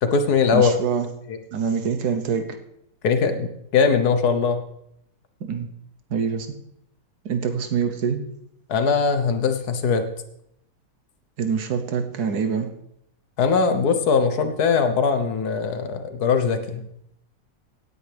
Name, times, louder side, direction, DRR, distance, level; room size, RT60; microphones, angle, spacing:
voice 1, 0.0-0.7 1.3-1.4 3.0-4.6 8.7-10.0 13.4-16.8, left 5 dB, 75° left, 8 dB, 1.6 m, -21 dB
voice 2, 0.5-1.1 1.5-2.5 5.4-5.7 6.1-6.5 7.2-8.2 11.4-12.7, right 6 dB, 80° right, 7 dB, 1.5 m, -25 dB
17.0 x 9.2 x 3.4 m, 0.75 s
omnidirectional pair, 1.7 m